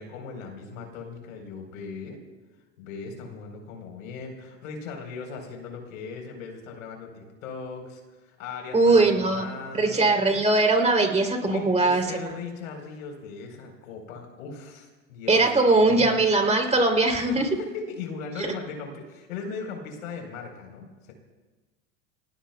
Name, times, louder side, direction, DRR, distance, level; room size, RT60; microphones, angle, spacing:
voice 1, 0.0-2.2 2.8-10.2 11.4-15.4 15.8-16.2 17.4-21.1, left 5 dB, 85° left, 3 dB, 4.3 m, -38 dB
voice 2, 8.7-9.5 9.7-12.1 15.3-17.6, right 3 dB, 15° right, 3 dB, 3.3 m, -20 dB
29.0 x 20.0 x 2.3 m, 1.2 s
supercardioid pair, 105°, 40 cm